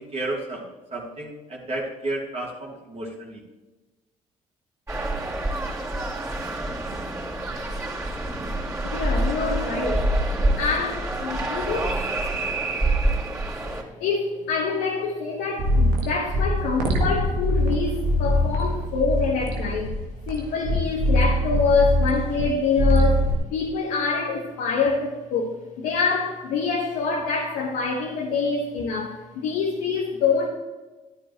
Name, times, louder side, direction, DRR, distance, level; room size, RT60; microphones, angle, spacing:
voice 1, 0.0-3.4, right 2 dB, 35° right, -4 dB, 3.1 m, -32 dB
sound 1, 4.9-13.8, right 1 dB, 15° right, 4.0 m, -26 dB
voice 2, 8.8-10.0 10.6-11.9 14.0-19.9 20.3-23.3 23.5-25.5 25.8-30.5, left 4 dB, 70° left, -2 dB, 1.6 m, -25 dB
sound 2, 15.6-22.5 22.8-23.3, left 1 dB, 75° right, 1.8 m, -23 dB
12.5 x 10.5 x 3.1 m, 1.2 s
hypercardioid pair, 55°, 17 cm